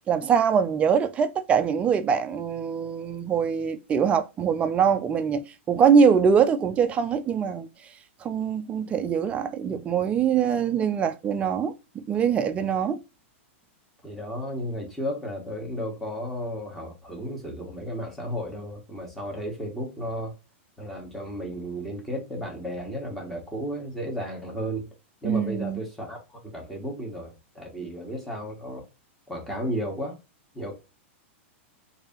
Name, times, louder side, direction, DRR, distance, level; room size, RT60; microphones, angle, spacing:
voice 1, 0.0-7.7 8.2-13.0 25.2-25.8, right 7 dB, 20° right, 0.4 m, -23 dB
voice 2, 14.0-20.3 20.8-24.9 25.2-28.9 29.3-30.2 30.5-30.8, equal, 5° left, 1.2 m, -33 dB
3.2 x 2.7 x 3.7 m
hypercardioid pair, 145°, 7 cm